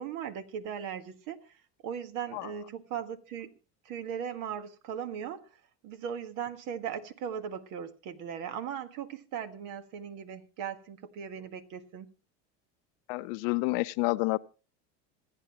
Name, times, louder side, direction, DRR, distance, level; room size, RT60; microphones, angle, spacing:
voice 1, 0.0-1.5 1.8-3.5 3.8-5.5 5.8-12.1, right 8 dB, 65° right, 1.6 m, -38 dB
voice 2, 13.1-14.4, left 23 dB, 70° left, 0.7 m, -29 dB
26.0 x 9.2 x 3.0 m
supercardioid pair, 100°, 34 cm